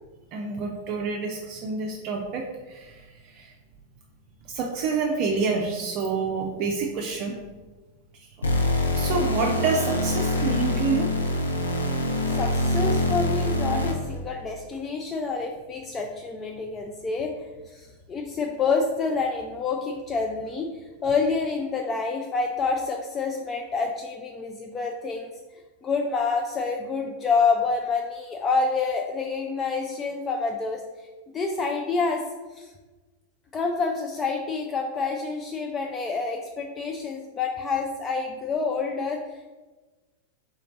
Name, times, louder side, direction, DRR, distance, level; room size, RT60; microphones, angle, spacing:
voice 1, 0.3-3.5 4.5-7.3 8.9-11.1, right 4 dB, 40° right, 0 dB, 0.5 m, -28 dB
sound 1, 8.4-14.2, left 1 dB, 75° left, 0.6 m, -25 dB
voice 2, 12.3-32.2 32.5-32.7 33.5-39.5, left 4 dB, 20° left, 2 dB, 0.4 m, -28 dB
3.8 x 3.2 x 3.9 m, 1.3 s
figure-of-eight pair, 90°, 0 cm